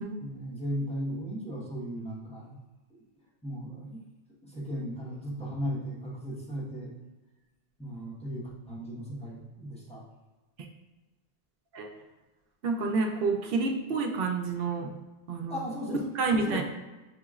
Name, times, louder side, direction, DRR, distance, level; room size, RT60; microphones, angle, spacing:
voice 1, 0.2-2.6 3.4-4.0 4.4-6.9 7.8-10.0 15.5-16.0 16.3-16.6, equal, 5° left, -7 dB, 1.1 m, -36 dB
voice 2, 12.6-14.9 15.3-15.7 16.1-16.6, right 4 dB, 70° right, 3 dB, 0.8 m, -29 dB
6.4 x 2.9 x 2.4 m, 1.1 s
omnidirectional pair, 1.1 m